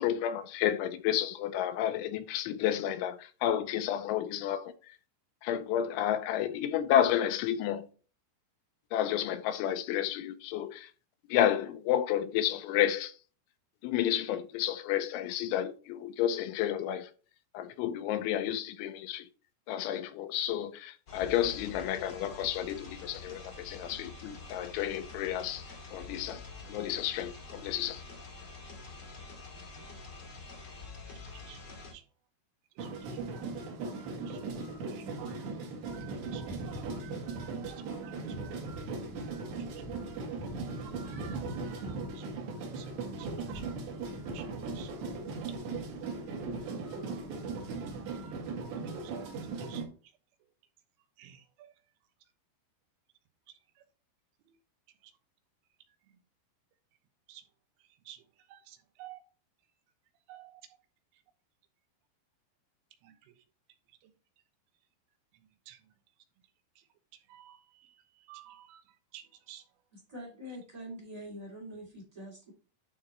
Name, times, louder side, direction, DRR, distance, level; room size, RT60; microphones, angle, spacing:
voice 1, 0.0-5.0 5.4-7.9 8.9-10.9 11.3-13.1 13.8-17.1 17.5-19.3 19.7-26.4 26.7-28.0, left 11 dB, 85° left, 3.0 m, -31 dB
sound 1, 21.1-31.9, left 3 dB, 55° left, 1.2 m, -47 dB
voice 2, 31.1-31.6 31.9-32.0 32.8-33.0 33.9-34.4 34.9-35.0 36.3-36.4 37.6-38.0 40.5-40.7 42.1-42.3 42.7-42.9 43.2-43.6 44.3-44.5 44.7-44.9 49.0-49.3 49.6-49.8 51.2-51.7 53.5-53.8 54.5-54.6 55.0-55.1 57.3-57.4 58.1-59.2 60.3-60.6 63.0-63.3 64.0-64.1 65.7-65.8 66.8-66.9 67.1-69.7, right 12 dB, 85° right, 3.6 m, -53 dB
sound 2, 32.8-49.9, right 3 dB, 65° right, 3.7 m, -38 dB
voice 3, 69.9-72.5, equal, 20° right, 1.1 m, -44 dB
11.0 x 3.9 x 4.2 m
omnidirectional pair, 5.6 m